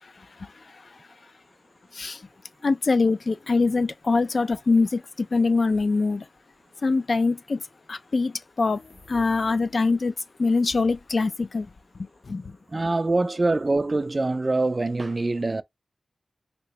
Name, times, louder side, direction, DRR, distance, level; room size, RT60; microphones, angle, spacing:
voice 1, 2.6-6.3 6.8-7.6 7.9-8.8 9.1-10.1 10.4-11.7 12.3-12.5, left 3 dB, 55° left, 0.4 m, -23 dB
sound 1, 8.5-10.1, left 4 dB, 75° left, 1.7 m, -49 dB
voice 2, 12.7-15.6, right 2 dB, 35° right, 0.3 m, -24 dB
2.9 x 2.9 x 3.0 m
wide cardioid pair, 100°, 0 cm